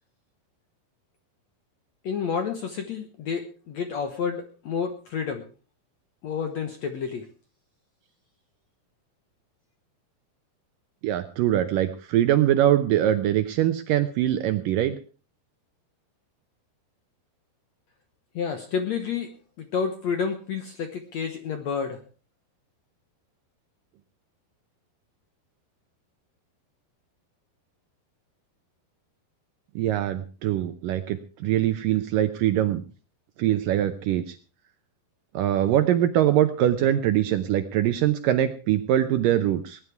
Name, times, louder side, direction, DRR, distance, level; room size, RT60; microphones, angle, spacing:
voice 1, 2.0-5.4 6.2-7.3 18.4-19.3 19.6-22.0, left 6 dB, 65° left, 7 dB, 1.7 m, -30 dB
voice 2, 11.0-14.9 29.8-32.8 33.4-34.4 35.3-39.8, right 12 dB, 75° right, 10 dB, 2.1 m, -23 dB
19.5 x 10.5 x 4.7 m, 0.36 s
omnidirectional pair, 4.7 m